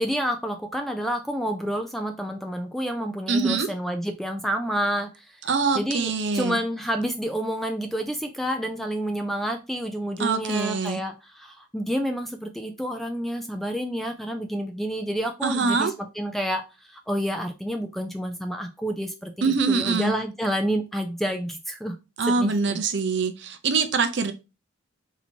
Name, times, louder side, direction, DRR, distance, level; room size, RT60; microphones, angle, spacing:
voice 1, 0.0-5.4 5.7-22.0 22.3-22.8, equal, ahead, 5 dB, 0.3 m, -29 dB
voice 2, 3.3-3.7 5.5-6.6 10.2-11.0 15.4-15.9 19.4-20.1 22.2-24.3, right 4 dB, 55° right, 8 dB, 0.6 m, -24 dB
4.1 x 2.8 x 4.4 m, 0.28 s
head